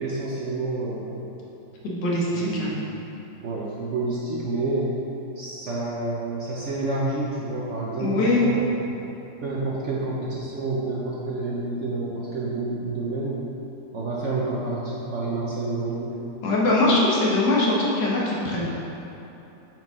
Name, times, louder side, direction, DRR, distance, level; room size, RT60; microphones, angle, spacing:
voice 1, 0.0-1.3 2.3-2.8 3.4-4.9 5.4-9.0 9.4-13.4 13.9-16.2, right 2 dB, 55° right, -5 dB, 0.8 m, -29 dB
voice 2, 1.8-2.7 8.0-8.4 16.4-18.7, left 2 dB, 80° left, -5 dB, 1.8 m, -22 dB
7.7 x 4.6 x 3.6 m, 2.9 s
omnidirectional pair, 1.9 m